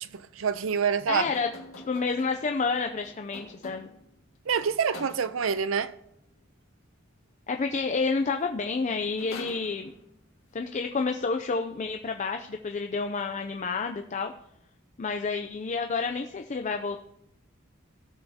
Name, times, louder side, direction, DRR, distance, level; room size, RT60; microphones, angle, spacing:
voice 1, 0.0-1.3 4.5-5.9, right 6 dB, 80° right, 0.5 m, -27 dB
sound 1, 1.1-4.1 4.9-5.6 8.2-8.3 8.6-10.2, left 2 dB, 85° left, 1.9 m, -46 dB
voice 2, 1.1-1.5 1.9-3.9 7.5-9.9 10.5-14.3 15.0-17.0, left 4 dB, 35° left, 0.5 m, -29 dB
17.5 x 6.8 x 2.8 m
head